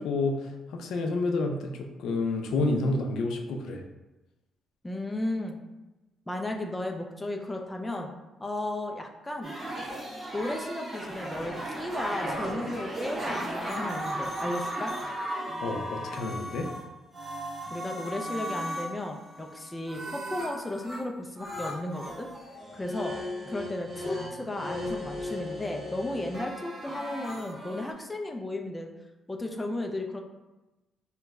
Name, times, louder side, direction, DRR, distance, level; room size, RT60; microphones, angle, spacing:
voice 1, 0.0-1.7 2.0-3.8 15.6-16.7, left 2 dB, 80° left, 3 dB, 0.4 m, -29 dB
voice 2, 4.8-5.6 6.3-8.1 8.4-9.5 10.3-14.9 17.7-22.3 22.7-23.2 23.5-28.9 29.3-30.2, left 1 dB, 15° left, 2 dB, 0.4 m, -34 dB
sound 1, 9.4-16.8 17.1-21.0 21.4-27.9, equal, 30° right, 1.4 m, -36 dB
2.9 x 2.2 x 3.5 m, 1.1 s
cardioid pair, 90°, 0 cm